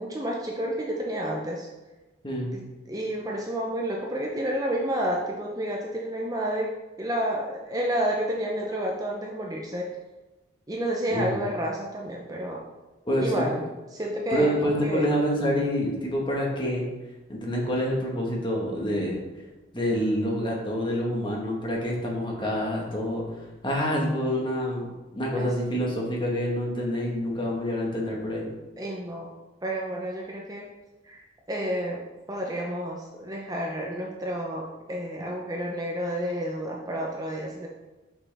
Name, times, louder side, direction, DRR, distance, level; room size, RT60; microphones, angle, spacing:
voice 1, 0.0-1.7 2.5-2.6 2.9-6.7 7.0-9.9 10.7-12.6 13.2-13.6 13.9-15.1 25.4-25.5 28.8-29.3 29.6-30.7 31.0-31.2 31.5-37.7, right 1 dB, 20° right, -1 dB, 0.6 m, -30 dB
voice 2, 11.1-11.4 13.0-13.5 14.3-16.8 17.3-19.2 19.7-24.9 25.1-28.5, equal, 25° left, -2 dB, 1.3 m, -27 dB
6.0 x 5.8 x 3.4 m, 1.1 s
head